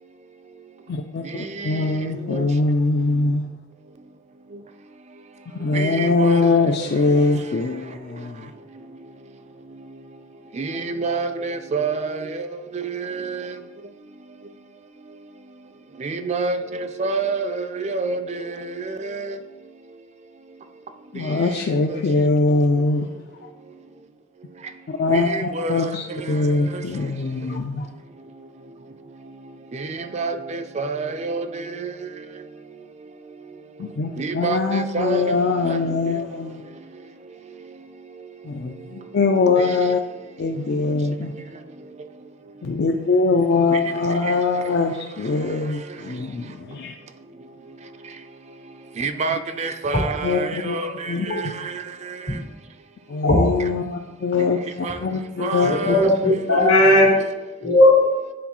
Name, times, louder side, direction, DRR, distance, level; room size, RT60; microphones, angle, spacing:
voice 1, 0.9-3.5 5.5-8.5 21.1-23.1 23.4-23.5 24.9-27.9 33.8-36.6 38.4-40.0 40.4-41.3 42.6-47.0 50.2-50.8 51.1-51.5 53.1-56.0, left 3 dB, 60° left, 0.4 m, -22 dB
voice 2, 5.7-6.5 10.6-12.2 13.1-13.4 16.0-16.6 17.0-18.2 19.0-19.3 25.1-25.9 30.1-31.5 34.2-35.2 35.7-35.8 49.0-50.9 54.8-55.0 55.4-56.0 56.5-56.7, right 4 dB, 35° right, 0.4 m, -27 dB
voice 3, 55.7-57.1 57.6-58.0, left 1 dB, 90° left, 1.8 m, -16 dB
9.3 x 3.9 x 2.9 m
head